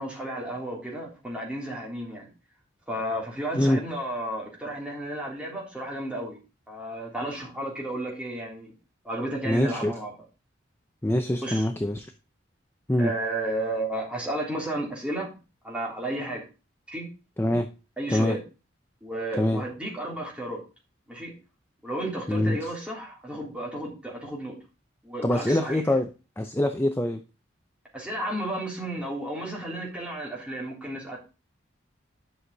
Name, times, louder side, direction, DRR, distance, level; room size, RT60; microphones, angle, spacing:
voice 1, 0.0-2.3 2.9-6.4 6.7-8.7 9.0-10.1 11.4-11.7 13.0-15.4 15.6-16.4 16.9-17.1 18.0-18.4 19.0-20.6 21.1-21.3 21.8-24.6 25.0-25.8 27.9-31.2, right 1 dB, 5° right, -3 dB, 3.5 m, -33 dB
voice 2, 9.4-9.9 11.0-12.1 12.9-13.1 17.4-17.7 18.1-18.4 19.4-19.6 22.3-22.6 25.2-26.1 26.4-27.2, left 1 dB, 10° left, 6 dB, 0.6 m, -24 dB
11.0 x 6.3 x 4.0 m, 0.31 s
head